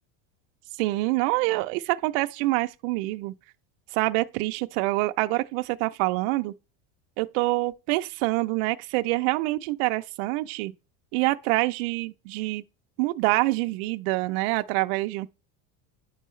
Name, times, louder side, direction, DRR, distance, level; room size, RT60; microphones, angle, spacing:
voice 1, 0.8-3.3 3.9-6.5 7.2-10.7 11.1-12.6 13.0-15.3, right 20 dB, 60° right, 0.4 m, -26 dB
10.0 x 4.6 x 3.1 m
cardioid pair, 170°, 37 cm